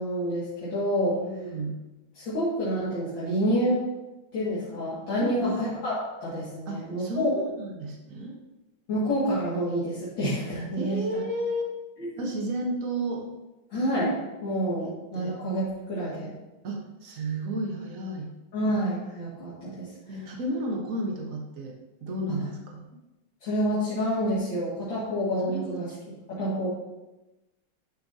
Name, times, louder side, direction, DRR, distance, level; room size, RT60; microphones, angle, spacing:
voice 1, 0.0-1.2 2.1-3.8 4.3-7.3 8.9-11.0 12.0-12.3 13.7-16.3 18.5-20.3 22.3-22.4 23.4-25.9 26.3-26.7, equal, 65° left, -10 dB, 2.9 m, -28 dB
voice 2, 1.1-1.8 5.2-5.6 6.7-8.4 10.8-11.7 12.2-13.2 15.1-15.4 16.6-18.3 20.1-22.8 24.9-25.0 25.5-25.8, right 1 dB, 45° right, 1 dB, 1.5 m, -32 dB
11.5 x 6.5 x 2.8 m, 1.0 s
omnidirectional pair, 2.3 m